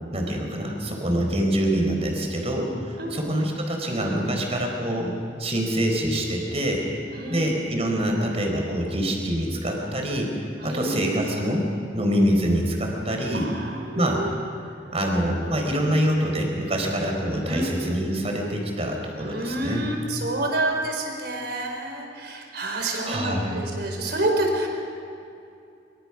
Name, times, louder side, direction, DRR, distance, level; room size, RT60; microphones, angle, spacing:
voice 1, 0.1-6.9 7.3-10.3 10.6-13.5 13.9-14.2 14.9-19.9 23.0-23.6, equal, 35° right, 1 dB, 4.5 m, -25 dB
voice 2, 7.1-7.4 10.6-11.3 13.3-14.4 17.5-18.2 19.2-24.7, right 1 dB, 65° right, 2 dB, 4.7 m, -28 dB
24.5 x 24.5 x 6.1 m, 2.6 s
head